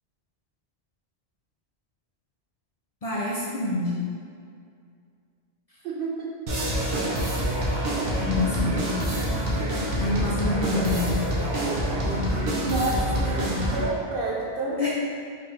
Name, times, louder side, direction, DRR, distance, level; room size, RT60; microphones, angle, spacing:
voice 1, 3.0-4.0 8.2-8.8 10.0-11.1 14.8-14.9, left 2 dB, 45° left, -7 dB, 0.5 m, -27 dB
voice 2, 5.8-6.3 11.7-12.0 12.5-14.9, right 2 dB, 65° right, -3 dB, 0.8 m, -30 dB
sound 1, 6.5-13.9, right 1 dB, 80° right, 1.1 m, -26 dB
4.3 x 2.6 x 3.4 m, 2.3 s
omnidirectional pair, 1.1 m